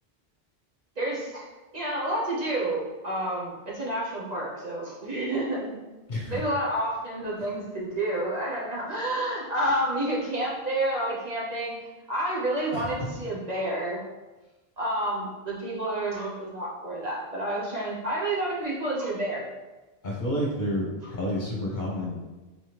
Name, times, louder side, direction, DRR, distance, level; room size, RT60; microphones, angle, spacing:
voice 1, 1.0-1.5 1.7-5.8 6.3-14.0 14.8-19.5, right 1 dB, 45° right, -5 dB, 1.0 m, -29 dB
voice 2, 6.1-6.4 12.7-13.1 20.0-22.2, equal, 50° left, -4 dB, 1.0 m, -30 dB
4.1 x 3.4 x 2.9 m, 1.2 s
omnidirectional pair, 1.0 m